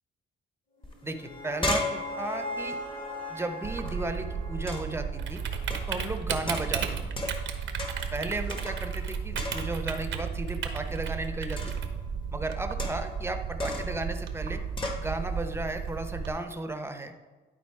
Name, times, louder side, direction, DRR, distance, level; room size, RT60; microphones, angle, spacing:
sound 1, 0.8-6.0, left 1 dB, 40° left, 1.9 m, -40 dB
sound 2, 0.8-0.9 1.2-3.9 4.7-5.1 5.7-6.0 6.5-7.5 7.8-8.2 8.5-9.1 9.4-10.0 11.6-11.9 12.8-13.2 13.6-14.0 14.8-15.1, left 2 dB, 25° left, 1.3 m, -35 dB
voice 1, 1.0-2.8 3.3-5.4 5.9-7.0 7.9-11.7 12.3-14.6 15.0-17.1, right 2 dB, 10° right, 6 dB, 0.8 m, -34 dB
Typing, 3.6-16.3, right 6 dB, 70° right, 1.0 m, -34 dB
11.5 x 4.0 x 4.7 m, 1.3 s
cardioid pair, 90°, 20 cm